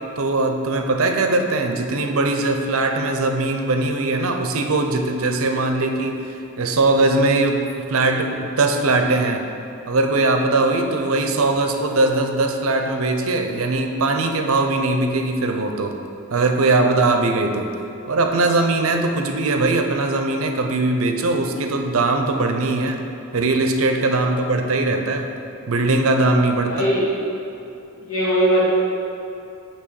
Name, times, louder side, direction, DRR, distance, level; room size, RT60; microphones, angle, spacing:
voice 1, 0.2-9.4 9.9-15.9 16.3-17.7 18.1-23.0 23.3-25.3 25.7-26.9, right 2 dB, 70° right, 4 dB, 0.6 m, -20 dB
voice 2, 26.6-27.1 28.0-28.7, equal, 85° left, -8 dB, 1.2 m, -20 dB
8.6 x 3.0 x 6.2 m, 2.7 s
head